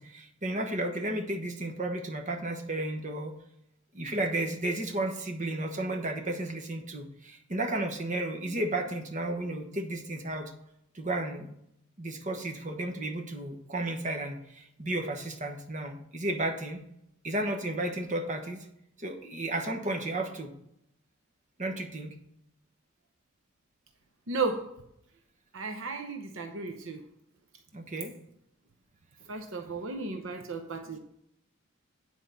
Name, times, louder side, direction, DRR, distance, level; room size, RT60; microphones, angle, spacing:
voice 1, 0.0-3.3 3.9-10.5 10.9-11.5 12.0-16.8 17.2-18.6 19.0-20.5 21.6-22.1 27.7-28.1, right 1 dB, 35° right, 4 dB, 1.2 m, -33 dB
voice 2, 24.3-24.7 25.5-27.0 29.3-31.0, right 4 dB, 65° right, 5 dB, 0.8 m, -34 dB
9.5 x 4.8 x 6.8 m, 0.76 s
head